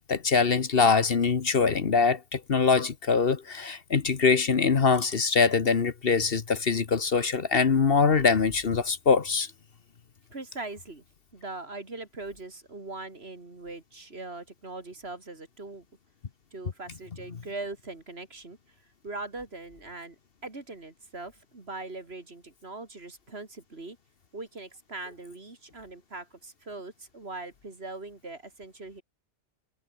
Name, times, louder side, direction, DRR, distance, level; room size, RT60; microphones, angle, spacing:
voice 1, 0.1-9.5, left 5 dB, 55° left, 1.3 m, -23 dB
voice 2, 10.3-11.0 11.3-15.9 16.5-18.6 19.0-20.2 20.4-24.0 24.3-29.0, right 2 dB, 55° right, 3.4 m, -41 dB
omnidirectional pair, 1.2 m